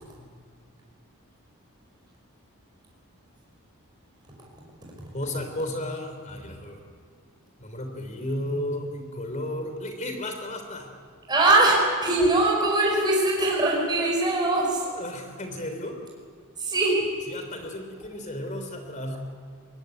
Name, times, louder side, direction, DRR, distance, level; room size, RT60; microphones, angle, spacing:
voice 1, 5.1-6.8 7.6-11.0 14.8-16.0 17.3-19.2, left 1 dB, 35° left, 6 dB, 3.4 m, -33 dB
voice 2, 11.3-14.8 16.6-17.0, right 2 dB, 20° right, -2 dB, 5.3 m, -21 dB
23.0 x 17.0 x 9.5 m, 2.1 s
head